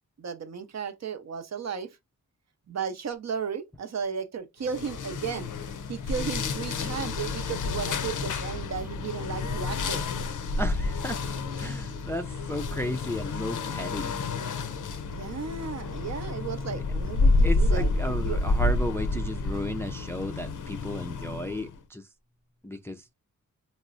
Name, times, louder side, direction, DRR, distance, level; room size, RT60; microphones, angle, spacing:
voice 1, 0.2-2.0 2.7-5.5 5.9-10.1 15.1-18.4, right 6 dB, 50° right, 0.6 m, -34 dB
sound 1, 4.6-21.8, left 3 dB, 65° left, 0.5 m, -29 dB
voice 2, 10.6-11.2 11.6-14.2 17.4-22.1 22.6-23.1, left 1 dB, 10° left, 0.3 m, -34 dB
3.7 x 2.0 x 2.4 m
cardioid pair, 60°, 34 cm